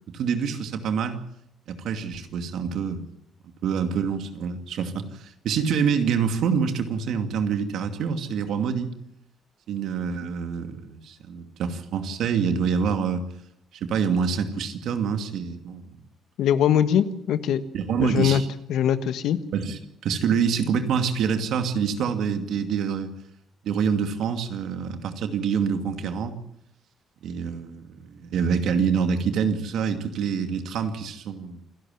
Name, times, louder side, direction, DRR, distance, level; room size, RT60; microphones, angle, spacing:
voice 1, 0.1-1.2 1.7-3.0 3.6-8.9 9.7-13.2 13.8-16.0 17.7-18.5 19.5-23.1 23.6-26.3 27.2-31.6, right 6 dB, 75° right, 7 dB, 2.5 m, -26 dB
voice 2, 16.4-17.6 18.0-18.4 18.7-19.4, left 9 dB, 80° left, 12 dB, 1.4 m, -21 dB
28.0 x 11.5 x 9.2 m, 0.75 s
cardioid pair, 90°, 0 cm